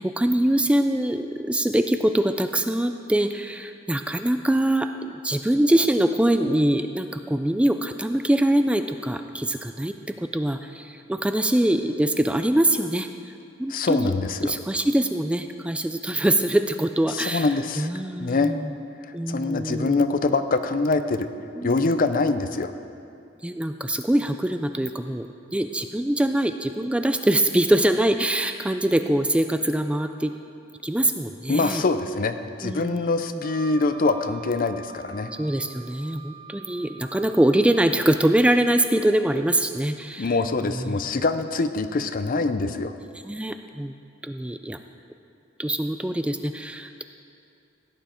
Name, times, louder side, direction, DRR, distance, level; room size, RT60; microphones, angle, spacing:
voice 1, 0.0-13.1 13.6-14.1 14.4-17.5 17.8-18.7 19.1-20.0 21.6-21.8 23.4-30.3 30.8-31.8 32.6-33.4 35.3-40.3 40.6-41.0 43.2-43.9 44.2-44.8 45.6-47.0, right 1 dB, 5° right, 8 dB, 0.3 m, -23 dB
voice 2, 13.7-14.5 17.1-17.9 18.2-18.5 19.3-21.3 21.6-22.7 31.5-35.3 40.2-42.9, left 3 dB, 45° left, 10 dB, 0.6 m, -24 dB
Wind instrument woodwind instrument, 33.4-37.9, right 6 dB, 45° right, 1.3 m, -44 dB
16.0 x 9.3 x 4.4 m, 2.5 s
head